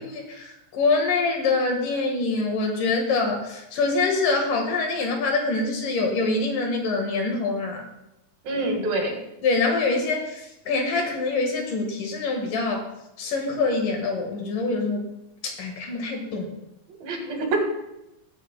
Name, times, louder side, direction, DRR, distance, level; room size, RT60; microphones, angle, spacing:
voice 1, 0.0-7.9 9.4-12.9 13.2-15.1 15.4-16.5, left 3 dB, 70° left, 2 dB, 3.0 m, -25 dB
voice 2, 8.5-9.2 17.0-17.6, right 2 dB, 85° right, 2 dB, 3.5 m, -25 dB
20.0 x 8.0 x 2.2 m, 0.91 s
omnidirectional pair, 4.0 m